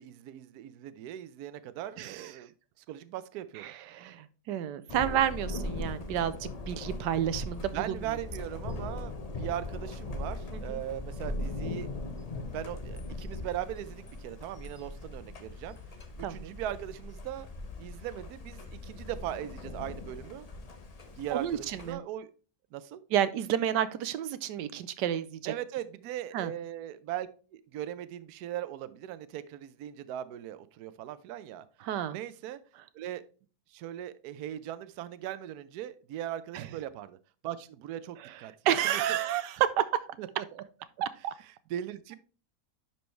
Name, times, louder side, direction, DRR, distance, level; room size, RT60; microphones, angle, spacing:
voice 1, 0.0-2.5 2.8-3.7 7.7-11.9 12.5-15.8 16.2-17.5 17.8-20.5 21.2-22.3 22.7-23.0 25.5-31.6 32.1-32.6 32.9-33.2 33.7-37.2 37.4-39.0 40.2-40.6 41.4-42.2, right 12 dB, 75° right, 1.1 m, -39 dB
voice 2, 2.0-2.3 3.6-7.8 10.5-10.8 16.2-16.6 21.3-22.0 23.1-25.5 26.3-26.5 31.8-32.2 36.5-36.7 38.6-39.8 41.0-41.3, right 10 dB, 90° right, 1.3 m, -30 dB
Thunder, 4.9-21.9, left 2 dB, 35° left, 0.6 m, -40 dB
10.5 x 4.5 x 3.1 m
omnidirectional pair, 1.8 m